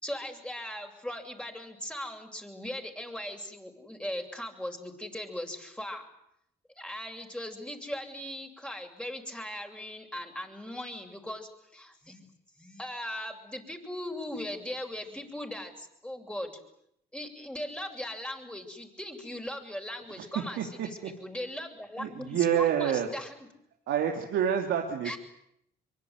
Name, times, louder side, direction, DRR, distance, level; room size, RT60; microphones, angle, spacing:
voice 1, 0.0-6.1 6.8-12.2 12.6-16.5 17.1-23.3 25.0-25.2, left 1 dB, 5° left, 4 dB, 7.5 m, -39 dB
voice 2, 20.1-21.1 22.0-23.1 23.9-25.1, right 9 dB, 75° right, 2 dB, 3.0 m, -28 dB
25.0 x 24.0 x 9.7 m, 0.76 s
supercardioid pair, 55°, 20 cm